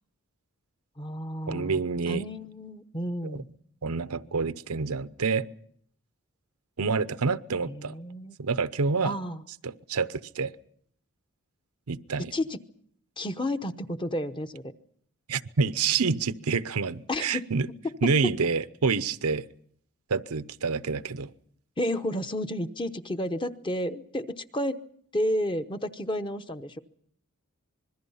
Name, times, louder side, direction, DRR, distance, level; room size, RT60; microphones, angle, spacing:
voice 1, 1.0-1.8 2.1-3.5 7.6-8.4 9.0-9.4 12.3-12.6 13.2-14.6 17.1-17.5 21.8-24.8 25.1-26.8, equal, 20° left, 8 dB, 0.9 m, -31 dB
voice 2, 1.5-2.2 3.2-3.4 3.8-5.5 6.8-8.0 8.4-9.1 9.6-10.5 11.9-12.3 15.3-17.7 18.0-19.4 20.1-21.3, right 5 dB, 85° right, 13 dB, 0.8 m, -27 dB
26.0 x 21.5 x 5.6 m, 0.64 s
head